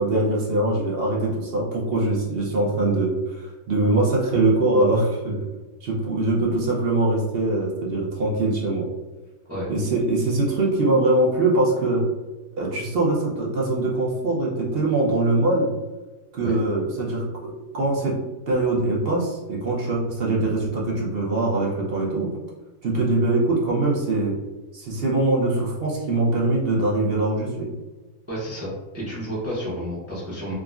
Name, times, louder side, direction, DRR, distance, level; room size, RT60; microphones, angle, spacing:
voice 1, 0.0-5.4 5.8-8.9 9.7-12.0 12.6-15.7 16.3-18.2 18.5-22.3 22.8-24.3 24.7-27.7, right 2 dB, 55° right, -3 dB, 0.7 m, -22 dB
voice 2, 28.3-30.5, equal, 15° right, -7 dB, 0.5 m, -31 dB
3.6 x 2.1 x 2.3 m, 1.2 s
omnidirectional pair, 1.5 m